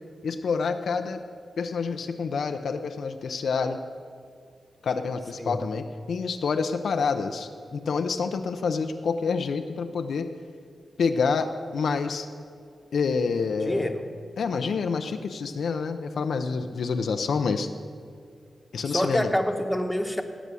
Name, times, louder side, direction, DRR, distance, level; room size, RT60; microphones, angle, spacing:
voice 1, 0.2-1.2 1.6-3.8 4.8-10.3 11.0-12.3 12.9-13.9 14.4-17.7 18.7-19.3, left 5 dB, 80° left, 7 dB, 0.6 m, -27 dB
voice 2, 13.6-14.1 18.8-20.2, equal, 5° left, 5 dB, 1.1 m, -27 dB
17.0 x 6.2 x 6.9 m, 2.2 s
cardioid pair, 80°, 0 cm